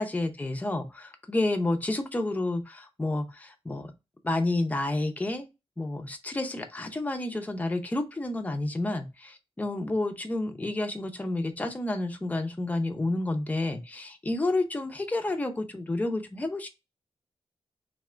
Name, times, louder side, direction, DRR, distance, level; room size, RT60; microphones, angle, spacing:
voice 1, 0.0-3.9 4.2-5.5 5.8-16.7, left 2 dB, 15° left, 0.7 m, -30 dB
3.7 x 3.5 x 3.3 m
wide cardioid pair, 165°, 11 cm